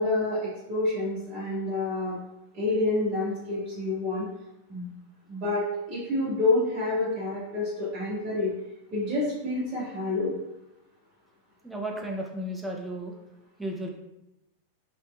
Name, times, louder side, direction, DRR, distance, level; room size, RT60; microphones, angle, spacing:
voice 1, 0.0-2.2 2.5-4.3 4.7-4.9 5.3-8.5 8.9-10.3, left 2 dB, 30° right, -8 dB, 0.9 m, -28 dB
voice 2, 11.6-13.1 13.6-13.9, right 1 dB, 5° right, -1 dB, 0.5 m, -34 dB
3.1 x 2.8 x 2.2 m, 0.88 s
figure-of-eight pair, 90°, 0 cm